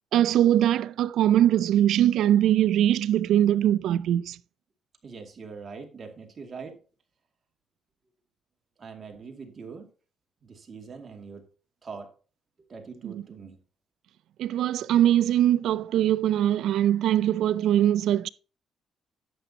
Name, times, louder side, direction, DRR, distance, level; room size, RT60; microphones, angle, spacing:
voice 1, 0.1-4.4 13.0-13.2 14.4-18.3, right 11 dB, 80° right, 0.4 m, -22 dB
voice 2, 5.0-6.8 8.8-9.9 10.4-11.4 11.8-12.1 12.7-13.6, right 5 dB, 40° right, 2.3 m, -42 dB
11.0 x 8.0 x 2.8 m
cardioid pair, 90°, 0 cm